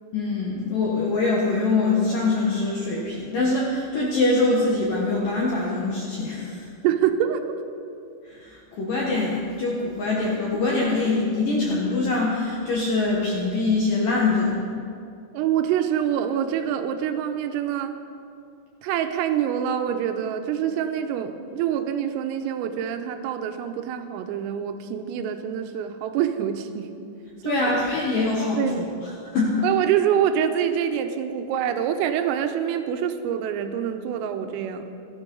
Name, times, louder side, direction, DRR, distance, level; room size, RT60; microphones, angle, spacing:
voice 1, 0.1-6.7 8.3-14.7 27.4-29.7, left 3 dB, 65° left, -4 dB, 2.2 m, -24 dB
voice 2, 6.8-7.5 15.3-18.0 18.8-26.9 27.4-27.8 28.5-29.0 29.6-34.9, right 9 dB, 90° right, 7 dB, 3.5 m, -25 dB
16.5 x 12.5 x 5.4 m, 2.5 s
omnidirectional pair, 5.8 m